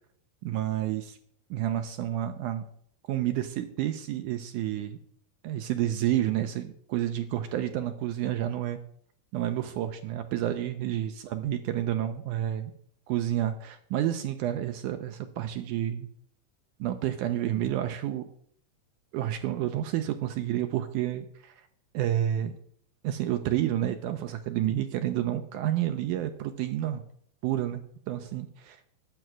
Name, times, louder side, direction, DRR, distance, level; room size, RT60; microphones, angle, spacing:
voice 1, 0.4-1.2 1.5-2.6 3.1-5.0 5.4-8.8 9.3-12.7 13.1-16.1 16.8-18.3 19.1-21.6 21.9-22.5 23.0-27.0 27.4-28.8, right 12 dB, 80° right, 8 dB, 1.8 m, -30 dB
9.3 x 6.6 x 6.1 m, 0.63 s
omnidirectional pair, 4.2 m